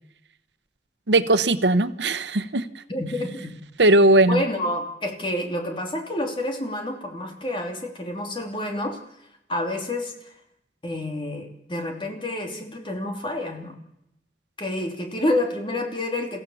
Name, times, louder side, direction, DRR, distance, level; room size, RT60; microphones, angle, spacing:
voice 1, 1.1-2.7 3.8-4.4, right 2 dB, 85° right, 12 dB, 1.1 m, -18 dB
voice 2, 2.9-3.5 4.3-9.0 9.5-10.3 10.8-13.7 14.6-16.4, left 1 dB, 30° left, 3 dB, 3.0 m, -28 dB
30.0 x 15.5 x 7.2 m, 0.83 s
head